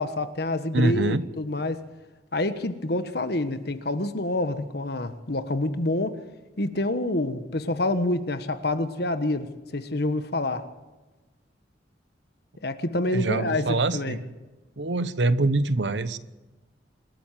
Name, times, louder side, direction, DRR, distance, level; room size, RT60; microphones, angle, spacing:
voice 1, 0.0-1.8 2.3-6.2 6.6-10.6 12.6-14.2, left 2 dB, 60° left, 11 dB, 1.5 m, -27 dB
voice 2, 0.7-1.2 13.1-14.2 14.8-16.2, right 2 dB, 75° right, 15 dB, 1.0 m, -24 dB
26.5 x 13.0 x 7.5 m, 1.2 s
head